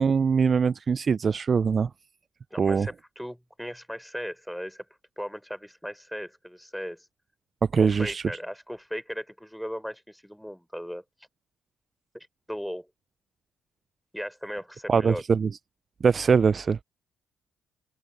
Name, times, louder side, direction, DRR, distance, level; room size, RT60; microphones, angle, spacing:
voice 1, 0.0-1.9 2.6-2.9 7.7-8.2 14.9-15.5 16.0-16.8, right 5 dB, 40° right, 0.3 m, -22 dB
voice 2, 2.5-4.9 5.2-7.1 7.8-11.0 12.1-12.9 14.1-15.2, equal, ahead, 3.9 m, -37 dB
cardioid pair, 90°, 0 cm